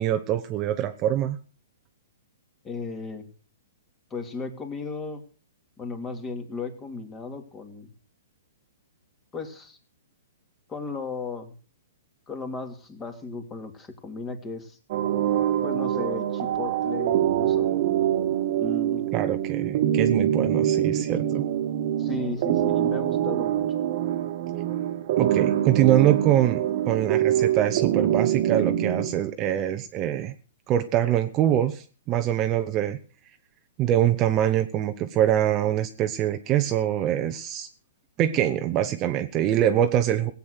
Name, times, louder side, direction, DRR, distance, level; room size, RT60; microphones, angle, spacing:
voice 1, 0.0-1.4 19.1-21.4 25.2-30.3 30.7-33.0 33.8-37.7 38.2-40.3, right 11 dB, 25° right, 8 dB, 0.9 m, -24 dB
voice 2, 2.6-3.3 4.1-5.2 5.8-7.9 9.3-9.8 10.7-11.5 12.3-14.8 15.6-17.7 18.6-19.1 22.0-23.8, left 4 dB, 15° left, 6 dB, 2.6 m, -35 dB
sound 1, 14.9-29.1, right 11 dB, 45° right, 1.6 m, -24 dB
17.5 x 8.5 x 6.3 m, 0.39 s
hypercardioid pair, 150°, 0 cm